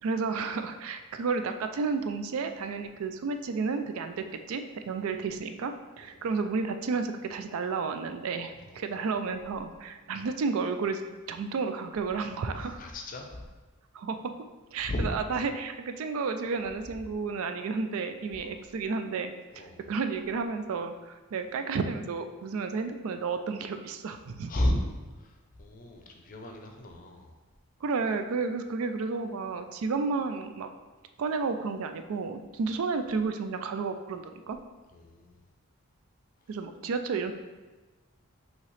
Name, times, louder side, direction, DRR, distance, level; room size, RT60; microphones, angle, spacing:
voice 1, 0.0-11.0 11.3-12.8 13.9-14.3 14.7-24.5 27.8-30.7 31.2-34.6 36.5-37.3, right 4 dB, 70° right, 8 dB, 0.4 m, -32 dB
voice 2, 8.7-9.2 12.6-13.4 14.8-15.1 18.4-18.6 19.5-19.9 24.5-24.8 25.1-27.3 32.6-32.7 34.9-35.4, left 1 dB, 40° left, 3 dB, 0.5 m, -34 dB
5.5 x 2.9 x 3.2 m, 1.2 s
head